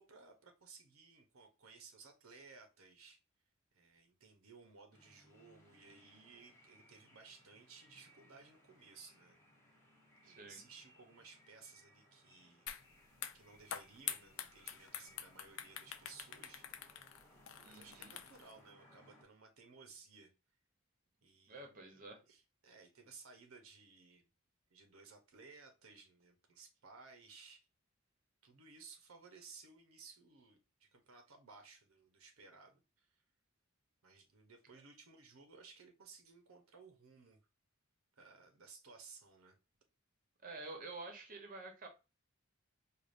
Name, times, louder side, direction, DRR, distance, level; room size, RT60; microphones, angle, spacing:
voice 1, 0.0-3.2 3.7-9.4 10.2-12.7 13.3-16.7 17.2-17.3 17.6-20.3 21.2-24.3 24.7-27.7 28.4-33.2 34.0-37.4 38.2-39.6, right 4 dB, 75° right, 0.8 m, -59 dB
sound 1, 4.9-19.2, equal, 10° left, 1.1 m, -66 dB
voice 2, 10.2-10.6 17.6-18.2 21.5-22.2 40.4-41.9, right 3 dB, 40° right, 0.9 m, -49 dB
sound 2, 12.7-12.8 13.1-18.5, left 9 dB, 65° left, 0.5 m, -46 dB
4.9 x 2.5 x 2.5 m
head